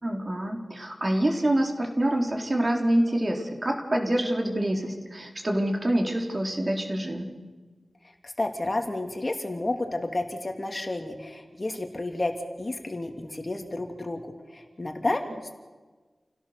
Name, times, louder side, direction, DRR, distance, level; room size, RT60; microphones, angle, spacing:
voice 1, 0.0-7.3, right 1 dB, 35° right, 2 dB, 3.9 m, -26 dB
voice 2, 8.2-12.3 12.6-15.2, left 2 dB, 35° left, 4 dB, 2.6 m, -31 dB
29.0 x 17.0 x 6.9 m, 1.3 s
wide cardioid pair, 70°, 0 cm